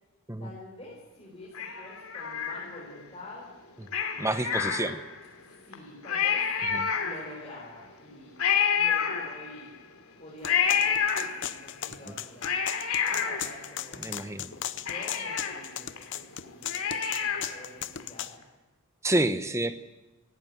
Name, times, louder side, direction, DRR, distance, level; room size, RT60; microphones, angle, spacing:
voice 1, 0.4-3.5 5.4-6.5 7.0-8.4 8.7-9.8 10.2-12.5 13.0-14.4 14.7-18.4, left 1 dB, 25° left, -4 dB, 5.0 m, -47 dB
Cat, 1.5-3.0 3.9-5.3 5.7-5.8 6.0-7.5 8.4-9.7 10.4-11.7 12.2-14.2 14.5-14.6 14.9-17.6 18.0-18.1, left 7 dB, 85° left, 3.0 m, -29 dB
voice 2, 4.2-5.0 6.7-6.9 14.0-14.5 19.0-19.9, right 1 dB, 15° right, 11 dB, 0.8 m, -29 dB
sound 1, 10.4-18.3, left 11 dB, 55° left, 0.7 m, -36 dB
18.5 x 17.0 x 9.4 m, 1.1 s
head